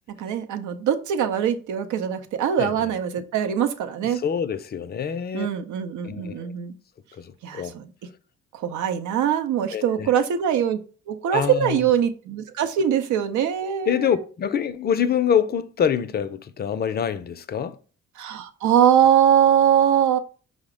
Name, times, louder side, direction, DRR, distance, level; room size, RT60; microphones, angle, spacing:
voice 1, 0.2-4.2 5.3-6.7 7.4-7.9 8.5-10.8 11.1-14.2 18.2-20.2, right 9 dB, 75° right, 0.6 m, -22 dB
voice 2, 4.2-5.5 6.0-6.5 7.5-7.7 9.7-10.1 11.3-11.8 13.9-17.8, left 8 dB, 35° left, 0.4 m, -25 dB
4.9 x 2.1 x 4.8 m
cardioid pair, 90°, 30 cm